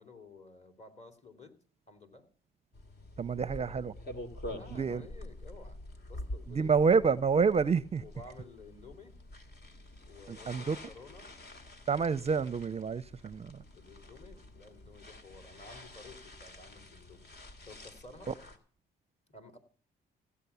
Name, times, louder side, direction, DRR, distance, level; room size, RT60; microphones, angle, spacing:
voice 1, 0.0-1.6 1.9-2.3 3.3-3.9 4.4-5.8 6.1-7.0 8.0-9.2 10.1-11.3 13.7-17.3 17.7-18.3 19.3-19.6, left 3 dB, 35° left, 3.1 m, -53 dB
sound 1, 2.7-18.6, left 1 dB, 55° left, 2.8 m, -47 dB
voice 2, 3.2-3.9 4.7-5.0 6.5-8.0 10.3-10.8 11.9-13.6 18.3-18.4, right 5 dB, 30° right, 0.6 m, -28 dB
16.0 x 8.5 x 6.9 m
cardioid pair, 90°, 20 cm